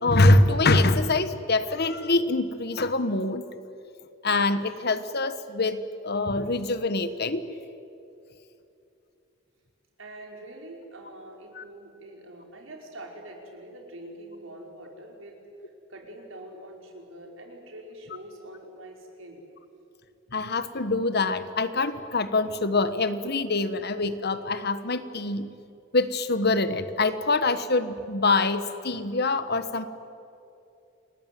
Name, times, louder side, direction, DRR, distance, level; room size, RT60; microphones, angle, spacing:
voice 1, 0.0-3.4 4.2-7.5 11.6-11.7 20.3-25.5 25.9-29.9, left 2 dB, 55° left, 12 dB, 1.4 m, -24 dB
voice 2, 10.0-15.4 15.9-19.4, right 1 dB, 80° right, 1 dB, 5.2 m, -44 dB
29.0 x 20.5 x 9.3 m, 2.7 s
head